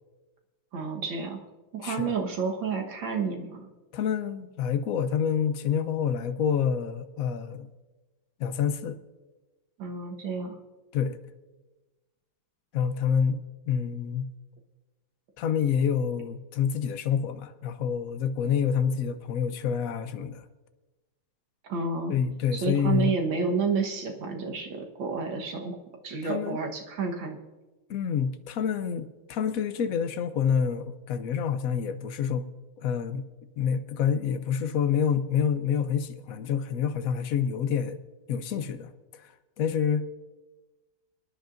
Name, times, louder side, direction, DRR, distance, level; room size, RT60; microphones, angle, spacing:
voice 1, 0.7-1.4 1.7-3.7 9.8-10.6 21.7-22.1 22.5-25.8 26.0-27.4, right 4 dB, 80° right, 2.1 m, -30 dB
voice 2, 1.8-2.1 3.9-7.7 8.4-9.0 10.9-11.2 12.7-13.4 13.7-14.3 15.4-20.5 22.1-23.1 26.2-26.6 27.9-32.5 32.8-33.2 33.6-38.0 38.3-39.3 39.6-40.0, left 7 dB, 65° left, 0.9 m, -27 dB
25.0 x 10.5 x 2.6 m
omnidirectional pair, 2.1 m